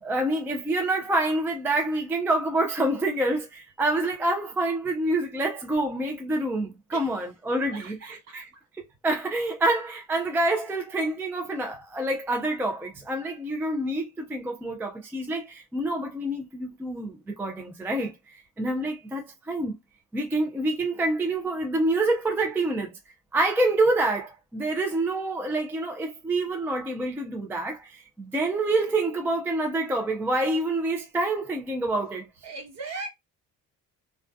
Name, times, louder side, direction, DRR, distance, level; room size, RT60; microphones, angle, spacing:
voice 1, 0.0-8.5 9.0-19.8 20.1-23.0 23.3-32.3, right 2 dB, 5° right, 0.3 m, -27 dB
voice 2, 6.9-7.3 7.7-8.7 32.4-33.1, right 3 dB, 45° right, 1.1 m, -39 dB
2.2 x 2.2 x 2.5 m
cardioid pair, 115°, 35 cm